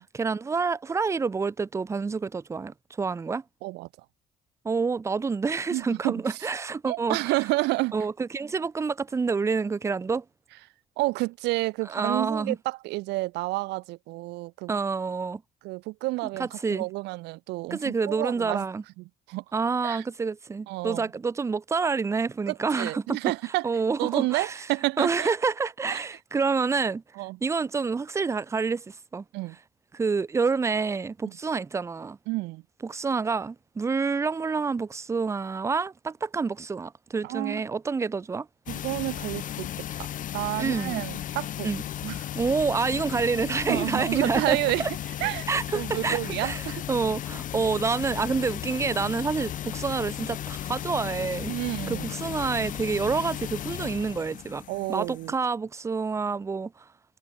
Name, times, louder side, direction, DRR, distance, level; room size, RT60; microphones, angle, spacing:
voice 1, 0.1-3.4 4.6-7.2 7.9-10.2 11.9-12.6 14.7-15.4 16.4-16.9 17.7-18.8 19.5-23.3 23.6-24.6 25.0-27.0 27.4-29.2 29.9-32.2 32.8-38.5 40.6-41.0 41.6-41.8 42.4-44.9 45.5-46.6 46.9-51.5 51.9-54.6 54.9-56.7, right 4 dB, 15° right, 0.4 m, -28 dB
voice 2, 5.7-6.4 6.8-7.9 11.0-14.7 15.6-18.6 19.0-19.4 19.8-20.0 20.7-21.1 22.5-23.7 24.0-25.3 25.9-26.1 27.2-27.4 29.3-29.6 32.3-32.6 37.2-37.6 38.7-40.1 40.3-41.7 42.0-42.3 43.7-44.9 45.2-45.5 45.7-46.8 51.5-52.1 54.7-55.3, right 21 dB, 90° right, 1.5 m, -30 dB
sound 1, 38.7-55.3, left 11 dB, 50° left, 0.7 m, -35 dB
cardioid pair, 110°, 17 cm